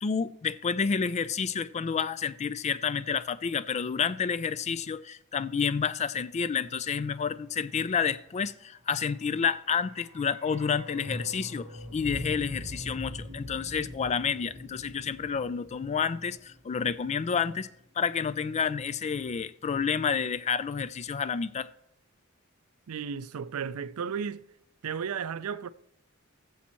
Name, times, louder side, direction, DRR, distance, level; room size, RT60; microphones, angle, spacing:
voice 1, 0.0-17.7 18.0-21.7, left 6 dB, 30° left, 0.3 m, -29 dB
sound 1, 9.3-17.5 17.7-17.8, equal, 30° right, 1.7 m, -43 dB
voice 2, 22.9-24.4 24.8-25.7, right 7 dB, 80° right, 0.4 m, -34 dB
19.5 x 7.1 x 3.0 m
head